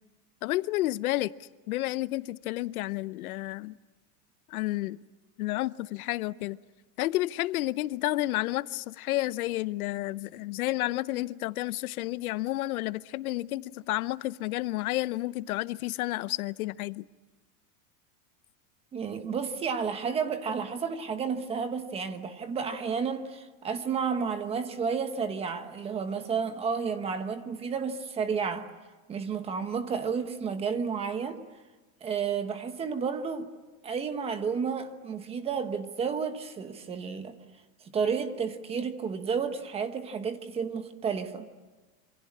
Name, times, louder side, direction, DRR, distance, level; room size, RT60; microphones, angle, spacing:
voice 1, 0.4-3.8 4.5-5.0 5.4-6.6 7.0-17.0, left 17 dB, 80° left, 0.8 m, -31 dB
voice 2, 18.9-28.7 29.1-31.4 32.0-33.5 33.8-37.3 37.9-41.5, right 6 dB, 15° right, 1.1 m, -31 dB
27.0 x 25.5 x 8.6 m
supercardioid pair, 175°, 43 cm